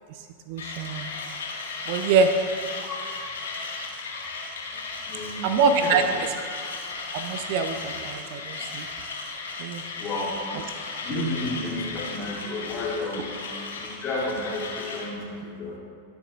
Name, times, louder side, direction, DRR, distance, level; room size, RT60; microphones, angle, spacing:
voice 1, 0.5-1.1 1.9-2.4 5.4-6.3 7.1-8.9 9.6-9.8 11.1-11.3, right 5 dB, 45° right, 8 dB, 0.5 m, -24 dB
Mechanisms, 0.6-15.1, left 4 dB, 65° left, 1.8 m, -36 dB
voice 2, 5.0-6.0 10.0-10.4 11.0-13.4 13.7-15.8, left 2 dB, 25° left, -5 dB, 2.7 m, -32 dB
20.0 x 6.9 x 2.5 m, 2.2 s
figure-of-eight pair, 90°, 0 cm